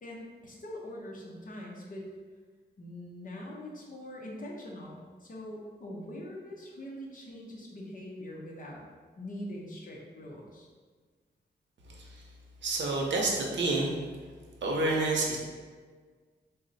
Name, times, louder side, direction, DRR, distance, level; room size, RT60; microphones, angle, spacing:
voice 1, 0.0-2.1 2.8-8.8 9.2-10.7, left 1 dB, 50° left, -2 dB, 0.7 m, -43 dB
voice 2, 12.6-14.0 14.6-15.4, right 2 dB, 90° right, -1 dB, 0.7 m, -28 dB
3.9 x 2.0 x 4.0 m, 1.5 s
wide cardioid pair, 165°, 18 cm